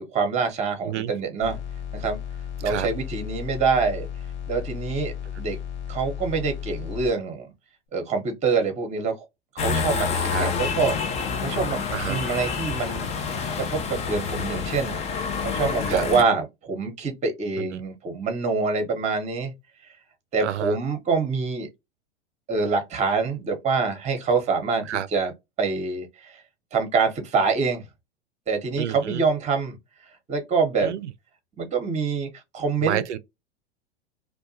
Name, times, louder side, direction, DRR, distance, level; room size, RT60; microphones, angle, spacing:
voice 1, 0.0-1.6 1.9-2.2 2.6-4.1 4.5-5.6 5.9-7.5 7.9-9.1 9.5-13.1 13.6-14.9 15.4-19.5 20.3-21.7 22.5-25.3 25.6-26.4 26.7-27.8 28.5-29.8 30.3-30.9 31.6-33.0, right 4 dB, 20° right, 0.9 m, -25 dB
sound 1, 1.4-7.1, left 9 dB, 80° left, 0.9 m, -34 dB
sound 2, 9.6-16.2, left 5 dB, 20° left, 0.5 m, -28 dB
voice 2, 11.9-12.2 15.9-16.1 17.6-17.8 20.4-20.8 24.9-25.1 28.8-29.2 30.8-31.1 32.8-33.2, right 11 dB, 85° right, 0.5 m, -29 dB
2.5 x 2.2 x 2.6 m
hypercardioid pair, 95°, 34 cm